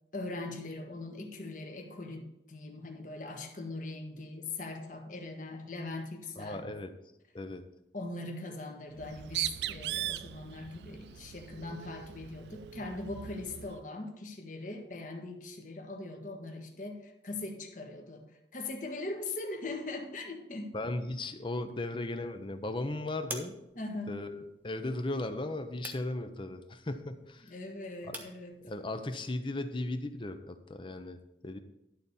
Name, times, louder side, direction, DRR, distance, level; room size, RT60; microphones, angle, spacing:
voice 1, 0.1-6.7 7.9-20.7 23.7-24.2 27.4-28.5, left 2 dB, 50° left, 3 dB, 1.4 m, -41 dB
voice 2, 6.4-6.9 7.3-7.6 20.7-23.5 24.1-27.5 28.1-28.2 28.6-31.6, left 2 dB, 30° left, 8 dB, 0.7 m, -36 dB
Bird, 8.9-13.8, right 13 dB, 70° right, 0.3 m, -39 dB
sound 1, 21.2-30.4, right 1 dB, 10° right, 1.2 m, -51 dB
11.5 x 4.1 x 7.1 m, 0.88 s
head